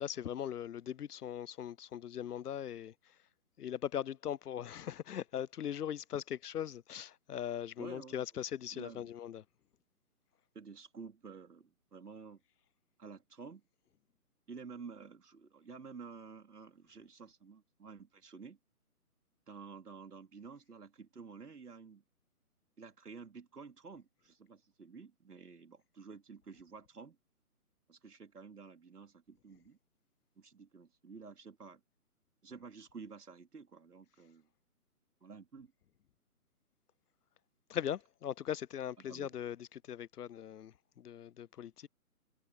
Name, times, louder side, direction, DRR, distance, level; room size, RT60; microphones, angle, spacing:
voice 1, 0.0-3.2 3.6-9.4 37.7-41.9, left 10 dB, 85° left, 0.6 m, -40 dB
voice 2, 7.8-8.2 8.7-9.0 10.5-12.4 13.0-13.6 14.5-18.6 19.5-22.0 22.8-27.2 27.9-29.8 30.4-31.8 32.4-34.5 35.2-35.7 39.0-39.3, right 5 dB, 85° right, 3.9 m, -51 dB
hypercardioid pair, 180°, 45 cm